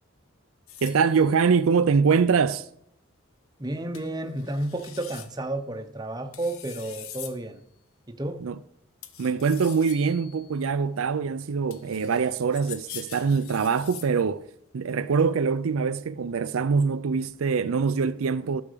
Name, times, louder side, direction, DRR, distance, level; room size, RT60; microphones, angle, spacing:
sound 1, 0.7-1.4 3.9-4.1 4.4-5.3 6.3-7.4 9.0-10.5 11.7-14.1, left 10 dB, 90° left, 1.0 m, -43 dB
voice 1, 0.8-2.7 8.4-8.6 9.2-14.5 14.7-18.6, right 5 dB, 85° right, 0.5 m, -24 dB
voice 2, 3.6-7.6 8.1-8.5, right 1 dB, 20° right, 0.9 m, -32 dB
12.0 x 7.0 x 5.1 m
head